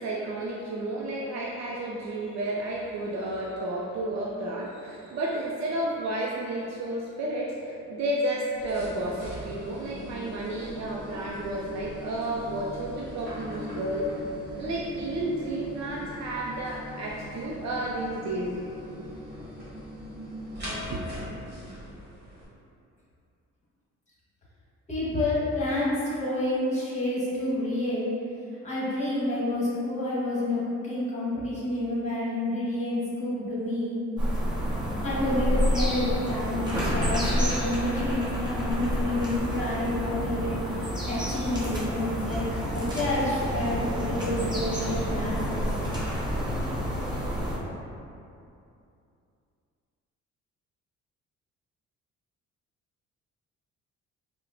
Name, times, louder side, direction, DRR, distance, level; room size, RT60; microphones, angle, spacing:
voice 1, 0.0-14.1 14.6-19.0 20.9-21.0, right 1 dB, 65° right, -3 dB, 0.4 m, -32 dB
sound 1, 8.5-22.5, left 1 dB, 35° right, 1.3 m, -40 dB
voice 2, 24.9-28.2 28.6-34.0 35.0-40.6 41.1-45.7, left 1 dB, 25° left, -8 dB, 1.3 m, -29 dB
sound 2, 34.2-47.6, equal, 15° right, 0.9 m, -29 dB
4.2 x 2.1 x 2.5 m, 2.6 s
cardioid pair, 90°, 30 cm